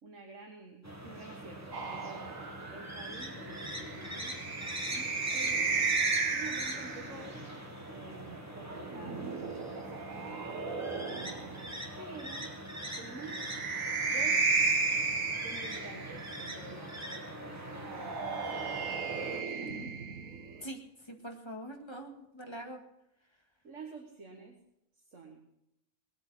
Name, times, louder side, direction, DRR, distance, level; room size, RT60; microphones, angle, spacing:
voice 1, 0.0-2.4 2.7-5.9 6.3-7.4 7.9-10.5 11.1-12.5 13.0-13.4 14.0-14.6 15.4-17.0 17.4-18.8 19.1-19.8 22.5-22.7 23.6-24.6 25.1-25.4, right 3 dB, 65° right, 1 dB, 2.0 m, -49 dB
sound 1, 0.8-19.4, equal, 10° right, 1.6 m, -43 dB
sound 2, 1.7-7.3 8.6-11.6 13.0-16.4 17.7-20.6, right 4 dB, 85° right, 2.0 m, -34 dB
voice 2, 21.1-22.8, right 1 dB, 20° left, 3 dB, 1.9 m, -43 dB
19.5 x 8.9 x 6.2 m, 0.84 s
omnidirectional pair, 1.4 m